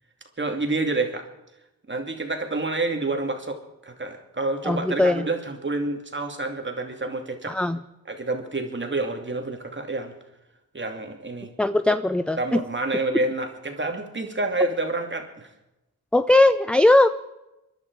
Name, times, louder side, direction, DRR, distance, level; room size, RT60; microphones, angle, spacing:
voice 1, 0.4-1.3 1.9-7.6 8.1-10.1 10.7-11.5 12.4-15.5, right 2 dB, 30° right, 4 dB, 2.6 m, -28 dB
voice 2, 4.6-5.2 7.5-7.8 11.6-12.6 16.1-17.1, left 2 dB, 5° left, 13 dB, 0.4 m, -19 dB
25.5 x 11.0 x 4.8 m, 0.96 s
cardioid pair, 60°, 37 cm